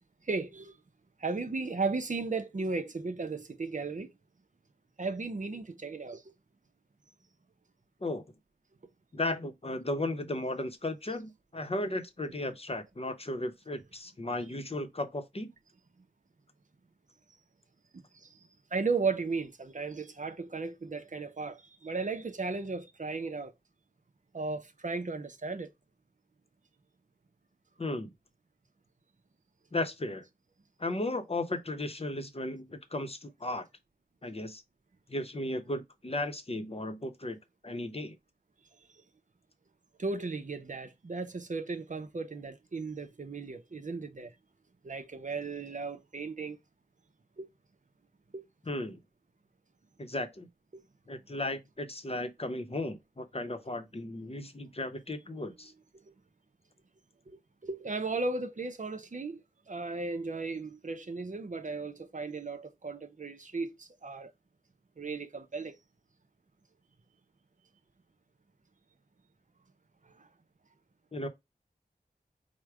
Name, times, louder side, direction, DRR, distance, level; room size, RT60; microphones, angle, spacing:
voice 1, 0.3-0.8 1.2-4.1 5.0-6.2 11.8-11.9 18.1-18.3 18.7-23.5 24.3-25.7 40.0-44.3 44.8-46.6 47.4-47.5 48.3-48.4 50.7-50.8 57.3-59.4 59.7-64.3 65.0-65.8 70.2-70.3, right 4 dB, 50° right, 0.6 m, -35 dB
voice 2, 9.1-15.5 27.8-28.1 29.7-30.2 30.8-33.6 34.2-34.6 35.1-37.4 37.6-38.2 48.7-49.0 50.0-50.5 51.1-55.7 71.1-71.3, left 2 dB, 40° left, 0.8 m, -35 dB
4.7 x 2.2 x 4.7 m
wide cardioid pair, 60°, 16 cm